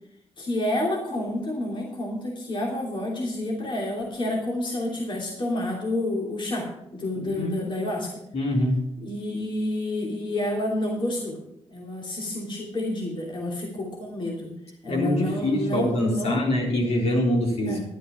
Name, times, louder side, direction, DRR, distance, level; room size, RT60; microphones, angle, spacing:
voice 1, 0.4-8.1 9.0-11.4 11.7-14.5 14.8-16.4 17.7-17.8, left 1 dB, 45° left, -2 dB, 2.8 m, -29 dB
voice 2, 7.2-7.5 8.3-8.8 14.9-17.8, left 1 dB, 65° left, -1 dB, 3.7 m, -24 dB
11.0 x 9.0 x 5.9 m, 0.82 s
cardioid pair, 80°, 11 cm